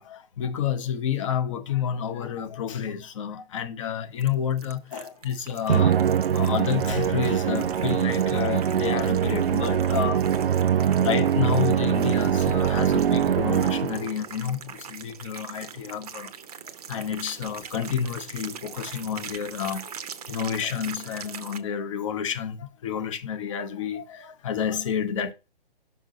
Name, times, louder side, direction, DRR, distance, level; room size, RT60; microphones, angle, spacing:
voice 1, 0.0-6.0 6.3-10.3 11.0-16.3 16.6-19.9 20.3-25.3, left 8 dB, 35° left, 0.8 m, -30 dB
sound 1, 4.2-21.6, right 7 dB, 40° right, 0.7 m, -42 dB
Musical instrument, 5.7-14.2, right 8 dB, 75° right, 0.5 m, -23 dB
6.0 x 5.3 x 3.7 m
figure-of-eight pair, 135°, 29 cm